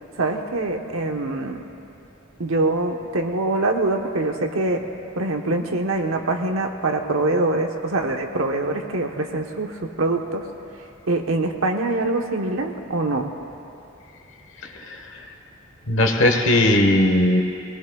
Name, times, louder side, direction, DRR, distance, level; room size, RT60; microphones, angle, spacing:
voice 1, 0.2-1.6 2.4-4.8 5.2-10.5 11.1-13.3, right 2 dB, 80° right, 3 dB, 1.1 m, -24 dB
voice 2, 14.6-15.2 15.9-17.4, left 1 dB, 65° left, 4 dB, 1.2 m, -19 dB
22.0 x 18.5 x 2.3 m, 2.8 s
head